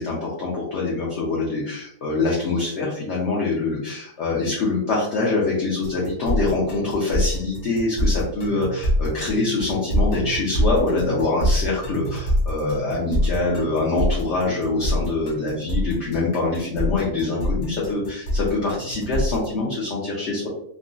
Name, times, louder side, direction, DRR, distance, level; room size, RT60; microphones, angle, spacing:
voice 1, 0.0-20.5, left 3 dB, 60° left, -4 dB, 0.8 m, -24 dB
sound 1, 5.8-19.5, equal, 75° left, 1.3 m, -25 dB
3.7 x 2.0 x 2.4 m, 0.72 s
omnidirectional pair, 1.7 m